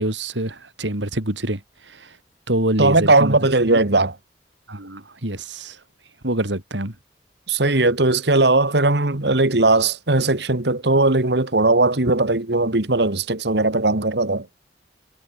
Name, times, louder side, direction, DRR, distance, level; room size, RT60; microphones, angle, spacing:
voice 1, 0.0-2.2 2.5-3.4 3.7-3.8 4.7-5.8 6.2-6.9, right 1 dB, 90° right, 4.6 m, -26 dB
voice 2, 2.8-4.1 7.5-14.5, right 2 dB, 70° right, 1.8 m, -18 dB
head